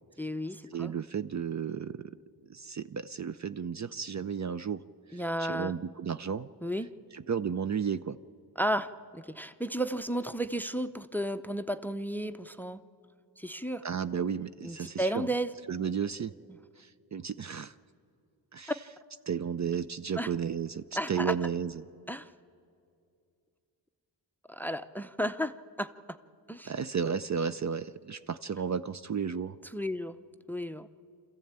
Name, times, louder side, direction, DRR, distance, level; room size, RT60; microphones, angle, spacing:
voice 1, 0.2-0.9 5.1-5.7 6.6-6.9 8.6-12.8 13.4-13.8 14.6-15.5 20.2-20.3 20.9-21.3 22.1-22.3 24.5-26.2 26.5-26.7 29.7-30.2 30.5-30.9, equal, 5° left, 12 dB, 0.6 m, -33 dB
voice 2, 0.7-2.2 2.5-4.8 5.1-6.5 7.1-8.2 13.8-15.3 15.7-16.3 16.8-17.7 18.5-18.7 19.3-21.9 26.6-29.6, right 7 dB, 40° right, 13 dB, 0.5 m, -33 dB
26.5 x 14.5 x 8.8 m, 2.4 s
cardioid pair, 75°, 45 cm